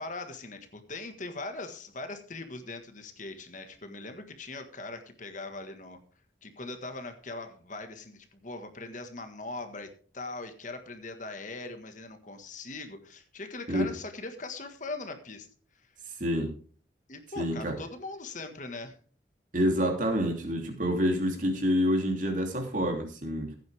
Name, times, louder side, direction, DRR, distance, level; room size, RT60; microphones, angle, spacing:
voice 1, 0.0-6.0 6.4-15.5 15.8-15.9 17.1-19.0, left 3 dB, 45° left, 7 dB, 1.7 m, -40 dB
voice 2, 16.2-16.5 17.4-17.8 19.5-23.5, equal, 45° right, 3 dB, 3.0 m, -27 dB
16.0 x 9.3 x 3.5 m, 0.41 s
head